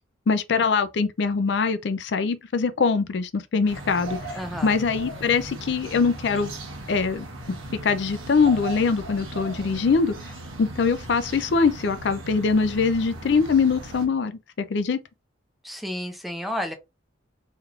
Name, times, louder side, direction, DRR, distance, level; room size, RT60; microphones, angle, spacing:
voice 1, 0.3-4.2 4.6-6.5 6.9-7.3 7.8-10.1 10.6-14.4 14.7-15.0, left 5 dB, 60° left, 0.4 m, -23 dB
sound 1, 3.7-14.1, right 2 dB, 90° right, 1.1 m, -38 dB
voice 2, 4.3-4.7 15.6-16.7, equal, ahead, 0.5 m, -31 dB
3.3 x 3.0 x 2.4 m
head